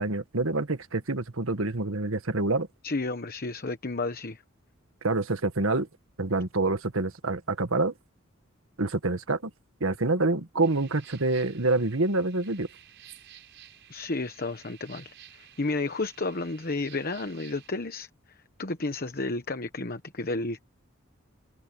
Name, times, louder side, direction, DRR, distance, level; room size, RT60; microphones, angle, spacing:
voice 1, 0.0-2.7 5.0-5.9 6.2-7.9 8.8-9.5 9.8-12.7, right 2 dB, 75° right, 1.6 m, -27 dB
voice 2, 2.8-4.4 13.9-20.6, left 3 dB, 45° left, 1.1 m, -32 dB
sound 1, 10.6-17.7, right 10 dB, 60° right, 7.4 m, -53 dB
head